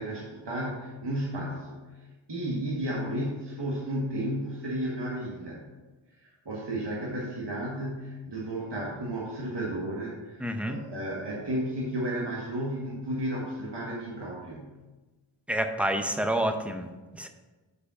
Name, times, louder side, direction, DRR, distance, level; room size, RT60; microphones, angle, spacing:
voice 1, 0.0-1.9 2.3-5.6 6.1-14.7, right 1 dB, 60° right, -5 dB, 1.5 m, -33 dB
voice 2, 10.4-10.8 15.5-17.3, right 1 dB, 5° right, 6 dB, 0.7 m, -29 dB
6.6 x 5.0 x 5.5 m, 1.2 s
wide cardioid pair, 60°, 47 cm